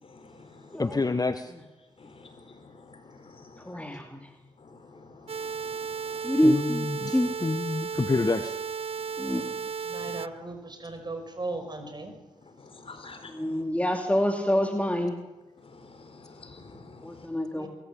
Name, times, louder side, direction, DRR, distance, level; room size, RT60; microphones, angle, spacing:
voice 1, 0.0-0.8 2.0-3.8 4.6-6.4 6.9-7.2 9.2-9.5 10.0-10.1 12.6-13.5 15.6-17.3, left 3 dB, 50° left, 8 dB, 4.6 m, -50 dB
voice 2, 0.8-1.5 6.4-8.5, left 3 dB, 30° left, 10 dB, 1.2 m, -28 dB
voice 3, 3.6-4.3 6.2-7.3 9.2-9.4 13.2-15.2 17.0-17.7, equal, 10° left, 4 dB, 2.7 m, -26 dB
sound 1, 5.3-10.3, right 6 dB, 55° right, 0.7 m, -34 dB
voice 4, 9.8-12.1 17.5-17.7, right 2 dB, 35° right, 7 dB, 6.0 m, -37 dB
24.0 x 15.0 x 8.6 m, 1.1 s
supercardioid pair, 40°, 12 cm